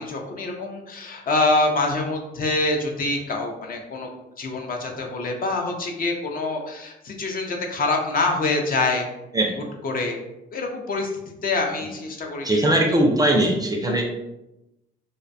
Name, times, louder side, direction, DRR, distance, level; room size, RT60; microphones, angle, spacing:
voice 1, 0.0-4.1 4.4-9.1 9.5-10.2 10.5-11.1 11.4-12.6 12.9-13.0 13.9-14.0, left 2 dB, 45° left, 2 dB, 0.5 m, -25 dB
voice 2, 12.4-14.0, right 1 dB, 20° right, 1 dB, 0.4 m, -20 dB
2.5 x 2.1 x 2.5 m, 0.91 s
cardioid pair, 90°, 20 cm